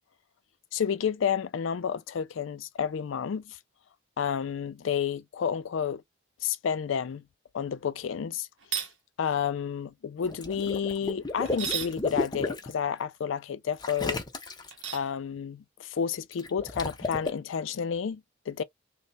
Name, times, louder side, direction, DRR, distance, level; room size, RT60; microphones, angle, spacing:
voice 1, 0.7-3.6 4.2-6.0 6.4-7.2 7.5-8.5 9.2-14.2 14.9-18.6, left 7 dB, 75° left, 0.4 m, -30 dB
sound 1, 8.6-8.9 11.5-12.0 14.7-15.1, right 9 dB, 65° right, 0.7 m, -33 dB
Water / Liquid, 10.2-12.7 13.8-14.8 16.3-17.3, left 2 dB, 20° left, 0.6 m, -33 dB
3.1 x 2.1 x 4.0 m
head